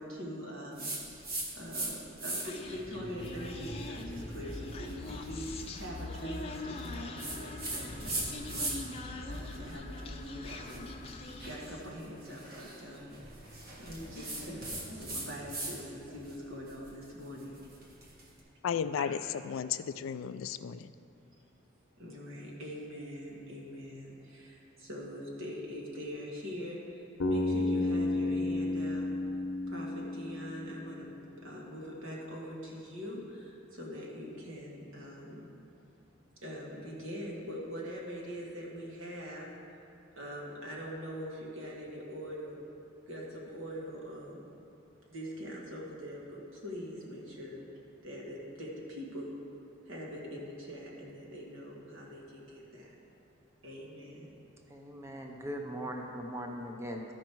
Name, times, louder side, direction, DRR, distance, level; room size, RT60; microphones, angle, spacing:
voice 1, 0.0-8.8 9.3-10.9 11.4-13.1 13.8-14.6 15.0-17.6 19.0-19.1 22.0-29.1 29.7-31.1 31.4-35.4 36.4-39.8 40.2-42.6 43.1-44.5 45.1-47.6 48.0-49.3 49.9-52.9 53.6-54.3, equal, 85° right, -3 dB, 1.8 m, -43 dB
sound 1, 0.8-1.9 2.2-2.7 3.2-9.0 9.3-15.8 16.1-18.3, right 2 dB, 45° right, 1.4 m, -40 dB
Human voice, 2.4-11.9, left 2 dB, 30° left, 0.6 m, -42 dB
voice 2, 18.6-19.2 19.4-20.9, left 7 dB, 70° left, 13 dB, 0.3 m, -34 dB
Bass guitar, 27.2-31.3, left 2 dB, 85° left, 0.8 m, -32 dB
voice 3, 54.7-57.1, equal, 15° right, 2 dB, 0.6 m, -40 dB
13.0 x 5.3 x 4.6 m, 2.7 s
head